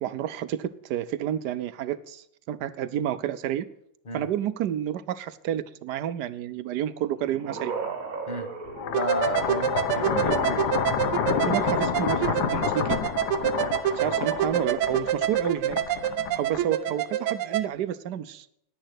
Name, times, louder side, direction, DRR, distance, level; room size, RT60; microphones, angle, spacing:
voice 1, 0.0-3.7 4.1-7.7 10.0-10.6 11.4-13.0 13.9-15.8 16.3-18.5, right 10 dB, 70° right, 14 dB, 1.0 m, -30 dB
sound 1, 7.0-9.6 11.1-12.9 14.2-14.7, right 5 dB, 40° right, 2.1 m, -38 dB
sound 2, 8.7-16.9, left 7 dB, 60° left, 1.3 m, -29 dB
voice 2, 8.9-10.5 14.0-14.1 14.5-14.6, left 2 dB, 30° left, 9 dB, 1.1 m, -32 dB
sound 3, 8.9-17.7, right 10 dB, 90° right, 1.6 m, -27 dB
10.5 x 10.0 x 8.1 m, 0.73 s
omnidirectional pair, 2.3 m